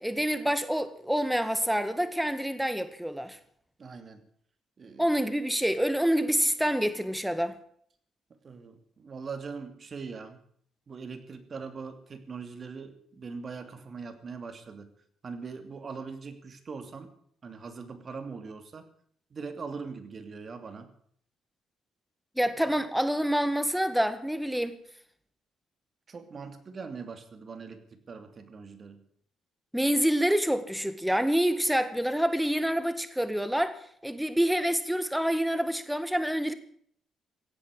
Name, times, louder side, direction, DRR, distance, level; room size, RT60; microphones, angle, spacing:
voice 1, 0.0-3.4 5.0-7.6 22.4-24.8 29.7-36.5, equal, 5° right, 1.7 m, -27 dB
voice 2, 3.8-4.2 4.8-5.1 8.4-10.4 10.9-14.9 15.2-17.1 17.4-18.9 19.3-20.9 26.1-29.0, right 5 dB, 45° right, 2.6 m, -41 dB
16.5 x 8.4 x 9.8 m
cardioid pair, 90°, 0 cm